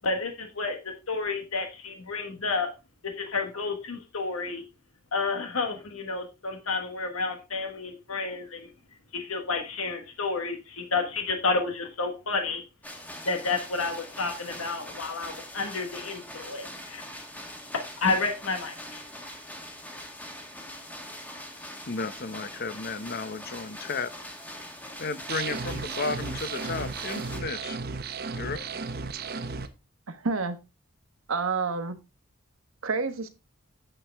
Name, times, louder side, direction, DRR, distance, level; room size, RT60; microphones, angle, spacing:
voice 1, 0.0-2.7 3.0-4.6 5.1-8.7 9.1-12.6 13.2-17.0 17.7-19.1, left 3 dB, 85° left, 1.4 m, -30 dB
sound 1, 12.8-27.4, left 1 dB, 10° left, 1.5 m, -42 dB
voice 2, 21.9-24.1 25.0-27.8 28.4-28.7, left 4 dB, 45° left, 0.8 m, -33 dB
sound 2, 25.3-29.7, right 4 dB, 45° right, 0.8 m, -34 dB
voice 3, 30.1-30.6 31.3-32.0 32.8-33.3, right 4 dB, 75° right, 1.2 m, -28 dB
9.1 x 7.6 x 3.5 m
head